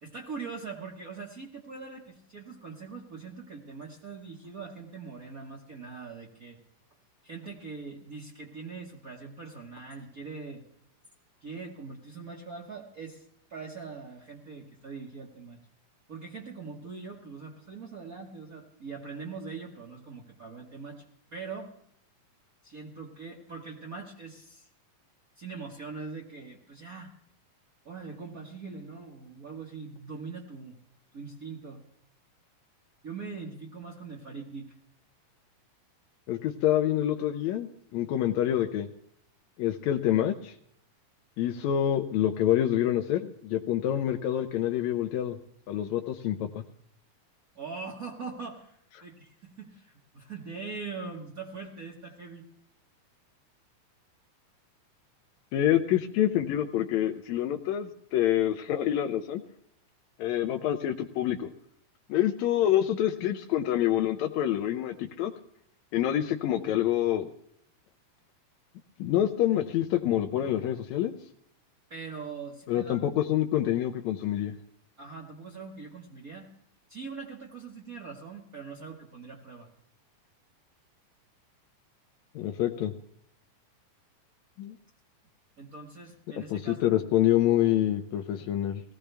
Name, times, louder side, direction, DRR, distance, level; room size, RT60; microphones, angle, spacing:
voice 1, 0.0-6.6 7.2-10.6 11.4-13.2 13.5-15.6 16.1-21.0 21.3-21.7 22.6-24.7 25.4-27.1 27.8-30.7 31.1-31.8 33.0-34.7 47.5-52.5 71.9-73.1 75.0-76.5 76.9-79.7 85.6-87.0, right 4 dB, 60° right, -2 dB, 0.9 m, -42 dB
voice 2, 36.3-38.9 39.6-40.5 41.4-45.4 45.7-46.6 55.5-59.4 60.2-61.5 62.1-65.3 65.9-67.3 69.0-71.1 72.7-74.6 82.3-82.9 84.6-84.8 86.5-88.8, left 12 dB, 75° left, 5 dB, 1.7 m, -27 dB
19.0 x 15.0 x 3.4 m, 0.70 s
omnidirectional pair, 3.9 m